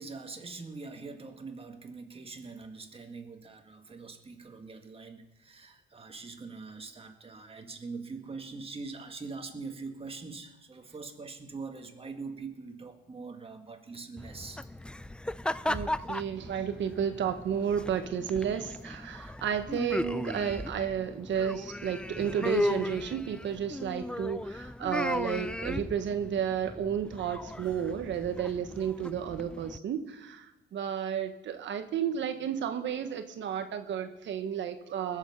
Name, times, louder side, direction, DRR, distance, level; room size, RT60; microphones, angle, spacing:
voice 1, 0.0-14.6, right 4 dB, 30° right, 5 dB, 1.9 m, -43 dB
sound 1, 14.2-29.8, left 1 dB, 5° left, 0.4 m, -36 dB
voice 2, 15.6-35.2, right 8 dB, 70° right, 8 dB, 1.2 m, -32 dB
20.5 x 7.3 x 5.5 m, 1.0 s
cardioid pair, 90°, 20 cm